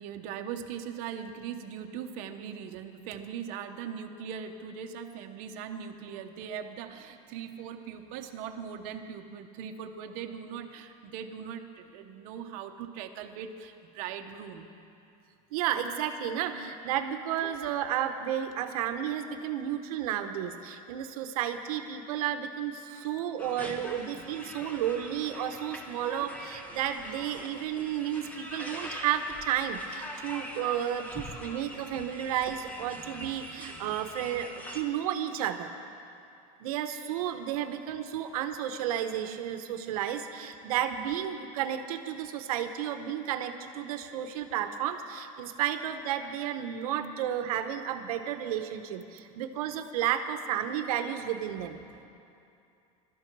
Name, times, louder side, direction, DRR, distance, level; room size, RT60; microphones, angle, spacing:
voice 1, 0.0-14.7 22.9-23.1 51.9-52.1, right 8 dB, 45° right, 5 dB, 1.0 m, -40 dB
voice 2, 15.5-35.7 36.6-51.8, right 10 dB, 80° right, 8 dB, 0.9 m, -32 dB
sound 1, 23.4-34.8, equal, 10° left, 1.1 m, -43 dB
22.0 x 12.5 x 4.6 m, 2.6 s
supercardioid pair, 170°, 19 cm